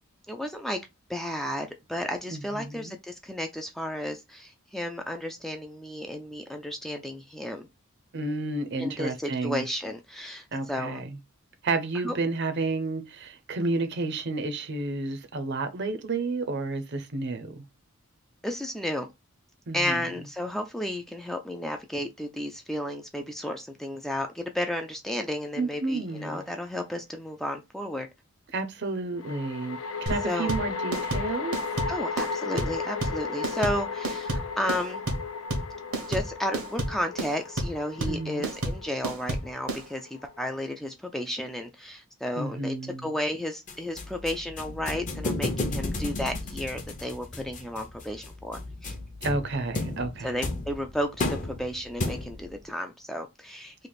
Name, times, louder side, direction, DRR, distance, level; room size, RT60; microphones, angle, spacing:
voice 1, 0.3-0.8 1.1-7.7 8.8-11.1 11.9-12.2 18.4-19.1 19.7-28.1 30.2-30.5 31.9-35.0 36.1-49.0 50.2-53.9, left 1 dB, ahead, 0.3 m, -33 dB
voice 2, 2.3-3.0 8.1-9.6 10.5-11.2 11.6-17.5 19.7-20.0 25.6-26.4 28.5-31.6 38.1-38.5 42.4-43.1 49.2-50.4, right 3 dB, 55° right, 0.6 m, -31 dB
sound 1, 26.2-26.3 29.2-40.6, left 4 dB, 75° left, 0.5 m, -35 dB
sound 2, 30.1-39.8, right 1 dB, 85° right, 1.2 m, -30 dB
sound 3, 43.7-52.6, left 2 dB, 35° left, 0.7 m, -34 dB
3.2 x 2.5 x 3.9 m
head